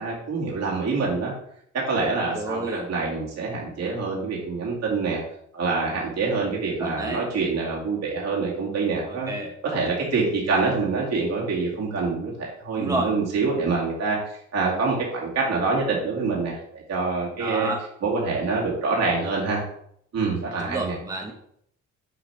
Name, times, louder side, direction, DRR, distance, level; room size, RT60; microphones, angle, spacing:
voice 1, 0.0-1.3 1.7-5.2 5.5-9.3 9.6-14.2 14.5-17.7 18.0-19.6 20.1-20.9, right 4 dB, 60° right, -4 dB, 2.3 m, -26 dB
voice 2, 2.3-2.9 6.8-7.2 9.1-9.5 12.7-13.1 17.4-17.8 20.6-21.3, right 1 dB, 10° right, 1 dB, 1.1 m, -30 dB
7.0 x 3.9 x 4.4 m, 0.69 s
cardioid pair, 90°, 30 cm